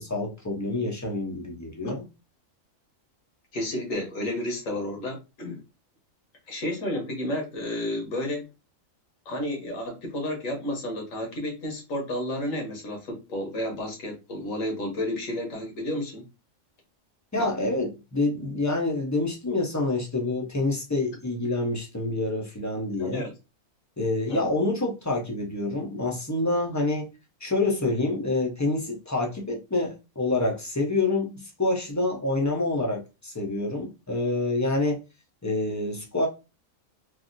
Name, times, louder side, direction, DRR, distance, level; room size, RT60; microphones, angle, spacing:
voice 1, 0.0-2.0 17.3-23.2 24.0-27.1 27.4-35.0 35.4-36.3, left 2 dB, 20° left, 0.5 m, -27 dB
voice 2, 3.5-5.6 6.5-8.5 9.2-16.2 17.4-17.5 23.0-23.3 24.3-24.4, left 1 dB, 75° left, 1.5 m, -31 dB
3.3 x 2.4 x 2.5 m
omnidirectional pair, 1.4 m